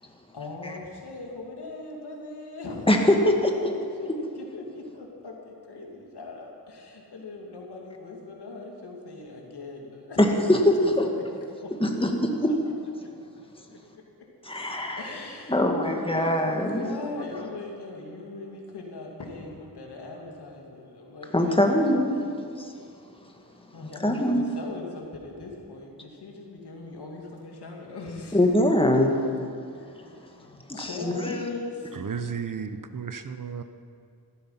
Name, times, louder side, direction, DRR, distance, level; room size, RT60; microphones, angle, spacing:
voice 1, 0.0-2.9 3.6-3.7 4.0-10.3 10.8-11.2 11.6-11.7 12.4-12.5 13.0-13.2 13.7-14.0 15.0-21.9 23.7-28.5 29.7-32.1, left 3 dB, 85° left, 0 dB, 2.5 m, -40 dB
voice 2, 2.9-3.5 10.2-10.9 11.8-12.5 14.4-15.1 15.5-16.9 21.3-22.1 22.6-22.7 24.0-24.4 28.3-29.2 30.0-30.1 30.7-31.4, left 1 dB, 15° left, 2 dB, 1.9 m, -22 dB
voice 3, 31.9-33.6, right 6 dB, 55° right, 10 dB, 0.8 m, -33 dB
15.0 x 13.0 x 5.7 m, 2.4 s
cardioid pair, 65°, 39 cm